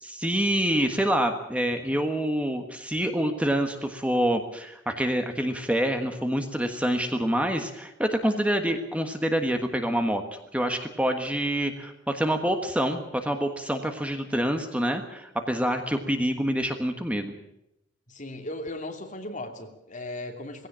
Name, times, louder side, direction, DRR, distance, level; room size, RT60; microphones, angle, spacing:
voice 1, 0.0-17.3, equal, 5° right, 5 dB, 1.4 m, -26 dB
voice 2, 18.1-20.7, left 1 dB, 40° left, 3 dB, 2.8 m, -37 dB
19.0 x 16.5 x 8.8 m, 0.84 s
head